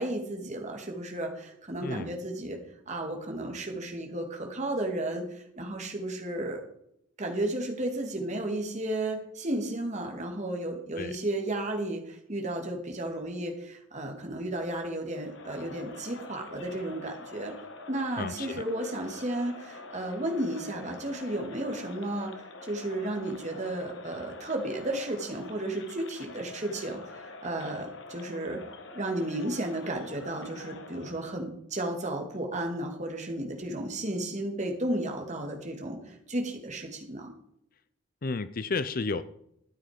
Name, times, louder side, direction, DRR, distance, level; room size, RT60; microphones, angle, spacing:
voice 1, 0.0-2.6 2.9-6.6 7.2-17.5 17.9-22.3 22.6-28.6 28.9-37.3, right 1 dB, 35° right, 2 dB, 2.2 m, -33 dB
voice 2, 1.8-2.1 11.0-11.2 18.2-18.6 38.2-39.2, left 4 dB, 40° left, 14 dB, 0.5 m, -32 dB
Crowd, 15.1-31.4, left 3 dB, 55° left, 1.4 m, -45 dB
13.0 x 9.2 x 5.1 m, 0.75 s
head